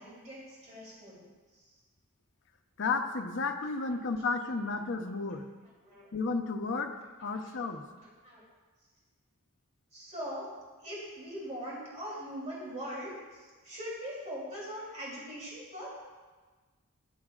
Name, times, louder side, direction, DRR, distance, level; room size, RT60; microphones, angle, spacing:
voice 1, 0.0-1.7 5.8-6.0 7.3-7.5 8.0-8.4 9.9-10.5 10.8-15.9, equal, 30° right, -6 dB, 3.1 m, -41 dB
voice 2, 2.8-5.5 6.1-6.9 7.2-7.8, left 4 dB, 60° left, 5 dB, 0.7 m, -32 dB
13.5 x 10.5 x 2.4 m, 1.3 s
head